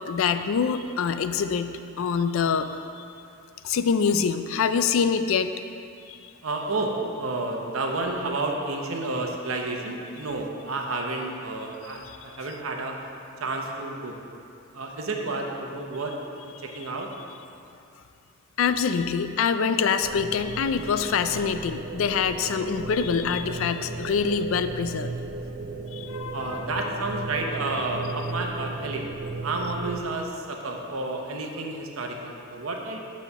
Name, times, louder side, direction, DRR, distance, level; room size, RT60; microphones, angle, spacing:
voice 1, 0.1-2.7 3.0-3.1 3.6-5.5 6.1-6.2 18.6-25.1 25.9-26.9, left 6 dB, 70° left, 10 dB, 0.4 m, -25 dB
voice 2, 6.4-13.0 13.4-14.2 14.7-17.1 26.3-29.1 29.4-33.0, right 2 dB, 75° right, 1 dB, 0.8 m, -31 dB
sound 1, 20.0-30.0, right 3 dB, 45° right, 0.4 m, -35 dB
8.1 x 4.2 x 5.4 m, 2.6 s
head